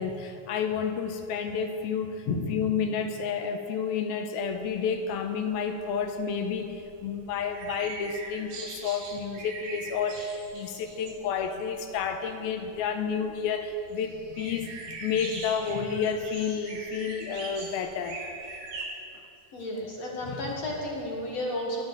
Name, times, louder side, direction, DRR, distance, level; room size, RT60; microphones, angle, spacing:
voice 1, 0.0-18.2, left 6 dB, 80° left, 6 dB, 2.3 m, -30 dB
sound 1, 4.4-18.9, right 3 dB, 70° right, 3.8 m, -43 dB
voice 2, 19.5-21.8, left 2 dB, 55° left, -2 dB, 2.0 m, -32 dB
22.0 x 9.2 x 4.0 m, 2.6 s
omnidirectional pair, 4.7 m